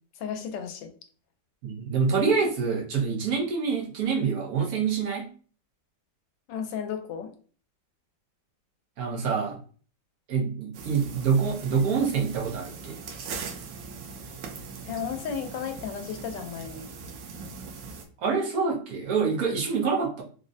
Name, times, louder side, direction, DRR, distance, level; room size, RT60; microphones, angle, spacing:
voice 1, 0.2-0.9 6.5-7.3 14.8-16.9, left 7 dB, 85° left, 6 dB, 1.2 m, -34 dB
voice 2, 1.6-5.3 9.0-9.6 10.3-13.0 18.2-20.2, right 5 dB, 65° right, -1 dB, 1.1 m, -26 dB
sound 1, 10.7-18.0, right 5 dB, 90° right, 1.3 m, -40 dB
3.6 x 2.1 x 2.5 m, 0.42 s
omnidirectional pair, 1.9 m